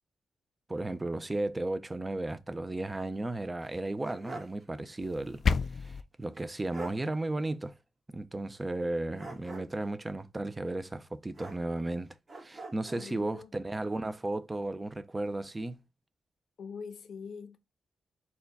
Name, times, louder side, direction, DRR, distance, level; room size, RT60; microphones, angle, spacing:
voice 1, 0.7-5.4 5.7-7.7 8.1-12.1 12.4-15.8, right 2 dB, 20° right, 0.5 m, -34 dB
sound 1, 3.6-4.6 5.0-5.1 6.3-6.4 6.7-7.0 9.2-9.9 11.3-11.9 12.3-13.1, right 3 dB, 35° right, 1.4 m, -45 dB
sound 2, 5.0-6.0, left 6 dB, 50° left, 0.3 m, -30 dB
voice 2, 12.9-13.5 16.6-17.6, left 5 dB, 75° left, 0.7 m, -43 dB
4.6 x 2.3 x 4.0 m
cardioid pair, 110°, 0 cm